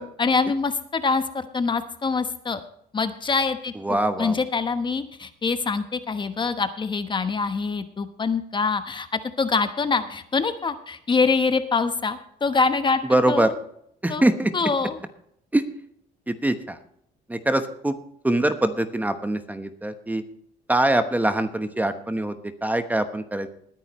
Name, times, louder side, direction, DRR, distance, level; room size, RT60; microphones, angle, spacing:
voice 1, 0.0-2.6 2.9-13.0 13.3-13.5 14.1-14.2 14.5-15.0, left 4 dB, 30° left, 10 dB, 1.1 m, -25 dB
voice 2, 3.8-4.4 13.1-13.5 14.0-14.5 15.5-15.6 16.3-16.8 17.3-17.9 18.2-20.2 20.7-22.3 22.6-23.5, right 1 dB, 10° right, 9 dB, 1.1 m, -23 dB
20.0 x 9.7 x 3.1 m, 0.71 s
cardioid pair, 110°, 17 cm